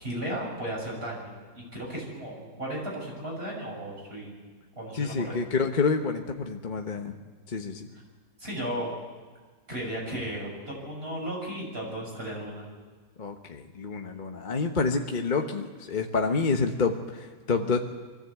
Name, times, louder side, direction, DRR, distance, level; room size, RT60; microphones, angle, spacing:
voice 1, 0.0-4.3 4.8-5.3 8.4-8.9 9.7-12.6, right 1 dB, 35° right, -3 dB, 6.6 m, -35 dB
voice 2, 4.9-7.1 7.5-7.9 13.2-17.8, left 4 dB, 35° left, 4 dB, 1.0 m, -28 dB
23.0 x 14.5 x 8.2 m, 1.5 s
omnidirectional pair, 1.7 m